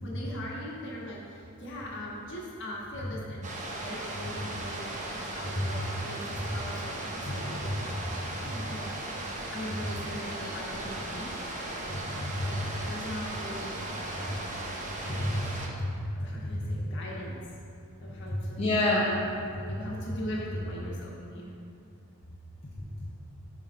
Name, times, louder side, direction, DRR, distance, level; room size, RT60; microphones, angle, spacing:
voice 1, 0.0-8.2 8.4-8.9 9.5-11.3 11.8-11.9 12.4-13.8 14.1-14.6 14.8-15.2 16.2-17.4 18.0-18.7 19.5-21.5, equal, 55° left, -4 dB, 1.5 m, -41 dB
sound 1, 3.4-15.7, right 1 dB, 35° right, 0.8 m, -37 dB
voice 2, 11.9-12.8 14.1-14.2 15.1-15.3 15.8-16.0 16.3-16.8 18.3-19.2 19.7-19.8, left 1 dB, 30° left, -6 dB, 0.7 m, -30 dB
7.3 x 5.7 x 3.8 m, 2.5 s
head